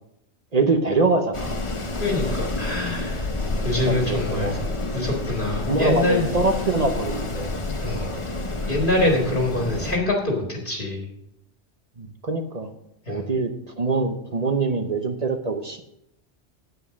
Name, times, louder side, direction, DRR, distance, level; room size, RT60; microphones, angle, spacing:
voice 1, 0.5-1.6 3.8-4.6 5.7-7.5 12.0-12.7 13.1-15.8, right 3 dB, 40° right, 6 dB, 0.9 m, -24 dB
Wind, 1.3-10.0, left 2 dB, 30° left, 1.0 m, -29 dB
voice 2, 2.0-3.3 3.6-4.6 4.9-6.3 7.8-8.1 8.7-11.0 13.1-13.2, left 2 dB, 45° left, -1 dB, 1.9 m, -24 dB
9.2 x 8.4 x 6.2 m, 0.80 s
omnidirectional pair, 1.2 m